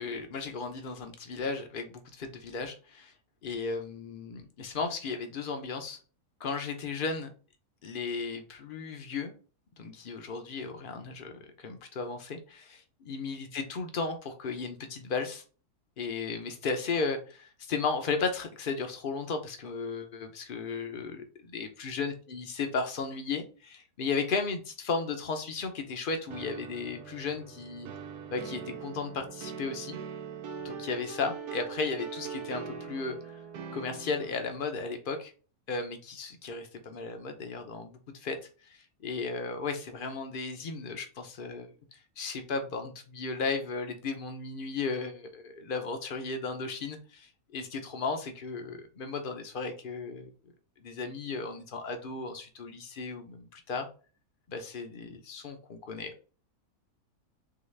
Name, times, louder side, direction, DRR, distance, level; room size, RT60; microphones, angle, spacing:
voice 1, 0.0-3.1 3.4-6.0 6.4-7.3 7.8-9.3 9.8-15.4 16.0-27.9 28.3-30.0 30.6-33.4 33.7-35.3 35.7-38.4 38.6-50.3 50.8-53.9 54.5-56.1, left 4 dB, 45° left, 6 dB, 0.7 m, -35 dB
sound 1, 26.3-34.6, right 6 dB, 90° right, 1.2 m, -41 dB
4.0 x 3.3 x 3.2 m, 0.37 s
omnidirectional pair, 1.6 m